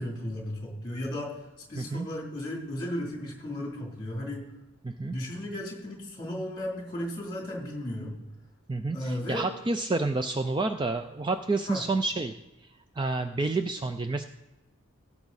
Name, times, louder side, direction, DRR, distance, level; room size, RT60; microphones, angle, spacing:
voice 1, 0.0-1.4 1.7-4.5 5.1-8.1 8.9-9.4 11.7-11.8, left 1 dB, 20° left, -1 dB, 3.0 m, -35 dB
voice 2, 1.7-2.1 4.8-5.2 8.7-12.3 13.0-14.2, right 3 dB, 20° right, 8 dB, 0.3 m, -29 dB
16.5 x 7.2 x 4.1 m, 1.0 s
head